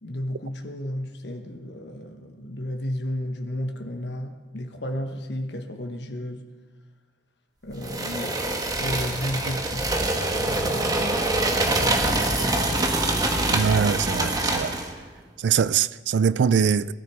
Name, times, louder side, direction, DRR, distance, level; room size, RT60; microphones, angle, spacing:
voice 1, 0.0-6.4 7.6-8.5 8.8-9.9 10.2-12.9, left 1 dB, 70° left, 1.2 m, -33 dB
Wood Scraping Hall, 7.8-14.9, right 2 dB, 20° right, 1.3 m, -25 dB
voice 2, 13.5-14.7 15.4-16.9, right 6 dB, 80° right, 0.4 m, -22 dB
20.5 x 13.0 x 4.7 m
head